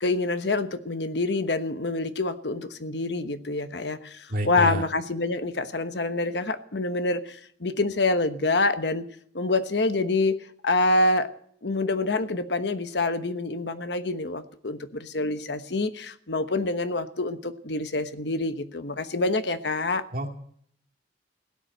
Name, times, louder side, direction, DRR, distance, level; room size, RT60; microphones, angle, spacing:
voice 1, 0.0-9.1 9.3-10.4 10.6-11.3 11.6-20.0, left 2 dB, 70° left, 10 dB, 1.2 m, -26 dB
voice 2, 4.3-4.8 20.1-20.3, equal, 55° right, 3 dB, 2.3 m, -28 dB
16.5 x 9.7 x 7.9 m, 0.62 s
head